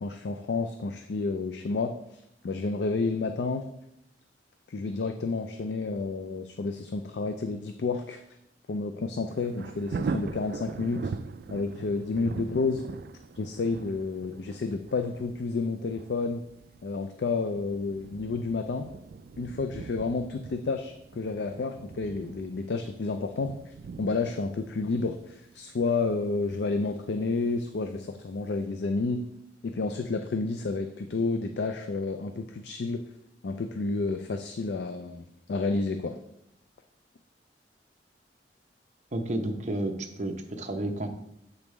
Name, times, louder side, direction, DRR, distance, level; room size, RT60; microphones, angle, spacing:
voice 1, 0.0-3.7 4.7-8.2 8.7-11.1 11.5-12.8 13.4-16.4 16.8-18.9 19.4-29.3 29.6-33.0 33.4-36.2, left 3 dB, 70° left, 7 dB, 0.4 m, -30 dB
Thunder, 9.3-28.0 28.5-28.6, right 4 dB, 60° right, 0.3 m, -41 dB
voice 2, 39.1-41.1, right 1 dB, 40° right, 4 dB, 0.7 m, -31 dB
7.9 x 5.2 x 3.2 m, 0.78 s
head